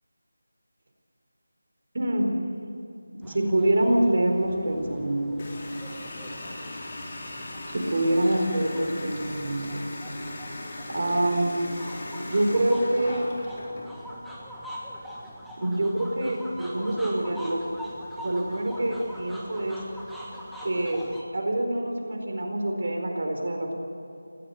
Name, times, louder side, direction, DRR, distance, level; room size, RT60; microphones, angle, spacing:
voice 1, 1.9-2.3 3.1-5.5 7.7-9.8 10.9-11.6 12.2-13.3 15.6-17.6 18.2-19.8 20.6-21.0 21.3-23.8, right 1 dB, 50° right, 2 dB, 4.4 m, -26 dB
sound 1, 3.2-21.2, equal, ahead, 1.6 m, -43 dB
Water tap faucet, 5.4-13.9, left 1 dB, 30° left, 4.2 m, -38 dB
20.0 x 17.0 x 9.5 m, 2.6 s
figure-of-eight pair, 170°, 0 cm